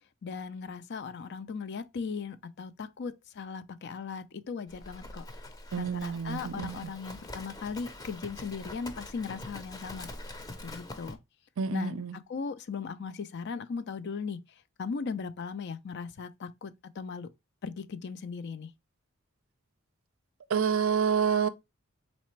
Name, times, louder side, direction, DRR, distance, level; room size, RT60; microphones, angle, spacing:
voice 1, 0.2-5.2 5.8-10.1 10.6-11.2 11.7-14.4 14.8-17.3 17.6-18.7, left 5 dB, 55° left, 0.4 m, -38 dB
Livestock farm animals working animals, 4.7-11.2, left 1 dB, 20° left, 0.6 m, -44 dB
voice 2, 5.7-6.8 11.6-12.2 20.5-21.5, right 6 dB, 70° right, 0.5 m, -28 dB
4.2 x 3.3 x 3.1 m
head